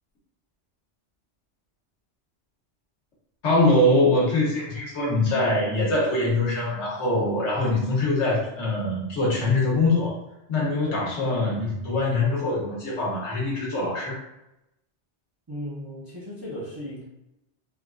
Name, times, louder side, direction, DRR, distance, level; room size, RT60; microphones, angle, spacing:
voice 1, 3.4-10.1 10.5-14.2, left 2 dB, 85° left, -5 dB, 1.3 m, -23 dB
voice 2, 15.5-17.0, equal, 25° right, -8 dB, 0.5 m, -36 dB
3.2 x 2.3 x 2.4 m, 0.87 s
omnidirectional pair, 1.2 m